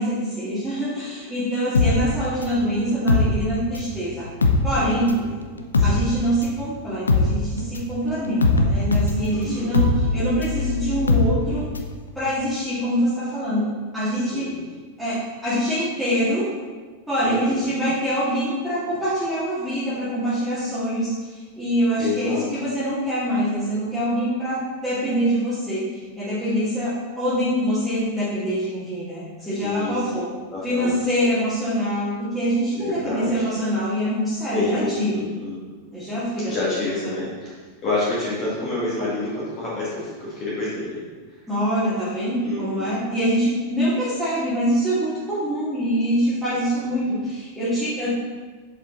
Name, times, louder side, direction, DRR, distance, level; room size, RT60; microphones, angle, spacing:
voice 1, 0.0-4.2 4.6-5.1 5.8-11.6 12.2-13.7 13.9-14.5 15.0-15.2 15.4-16.5 17.1-24.6 24.8-25.8 26.2-30.3 30.6-35.3 35.9-36.5 36.9-37.2 41.5-48.4, equal, 5° right, -13 dB, 2.2 m, -24 dB
sound 1, 1.7-4.0 4.3-12.0 12.3-12.4, left 3 dB, 75° left, 0.6 m, -21 dB
voice 2, 4.7-5.4 5.7-6.0 9.3-9.8 14.1-14.6 17.2-17.8 22.0-22.4 26.4-26.5 29.4-30.0 30.5-31.0 32.7-33.5 34.5-35.7 36.4-37.5 37.8-41.0 42.4-43.0 46.5-46.9, left 3 dB, 35° left, -8 dB, 2.1 m, -29 dB
7.4 x 5.1 x 3.9 m, 1.4 s
figure-of-eight pair, 90°, 0 cm